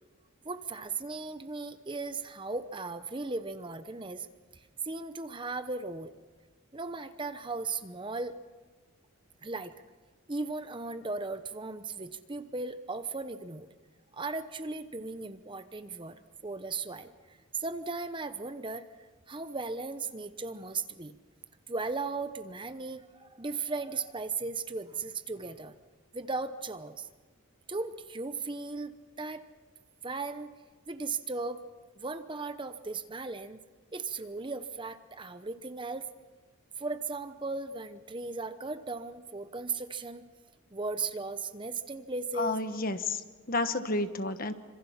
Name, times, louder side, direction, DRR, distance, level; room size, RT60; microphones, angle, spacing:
voice 1, 0.4-4.3 4.5-6.1 6.7-8.3 9.4-9.7 10.3-13.7 14.1-18.8 19.3-21.2 21.7-25.7 26.1-27.1 27.7-29.5 30.0-30.5 30.9-31.6 32.0-33.6 33.9-36.1 36.8-40.2 40.7-42.6, right 3 dB, 20° right, 10 dB, 0.9 m, -37 dB
voice 2, 42.3-44.5, left 2 dB, 40° left, 9 dB, 1.2 m, -31 dB
27.0 x 26.0 x 5.8 m, 1.3 s
head